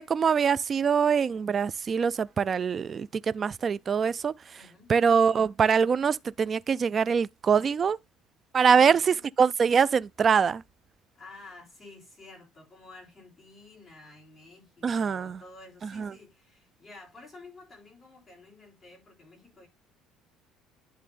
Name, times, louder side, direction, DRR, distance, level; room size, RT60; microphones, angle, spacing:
voice 1, 0.0-4.3 4.9-8.0 8.5-10.6 14.8-15.4 16.0-16.1, right 6 dB, 30° right, 0.3 m, -24 dB
voice 2, 4.6-4.9 8.6-9.3 11.1-19.7, left 3 dB, 20° left, 3.7 m, -51 dB
10.5 x 3.6 x 3.4 m
cardioid pair, 125°, 0 cm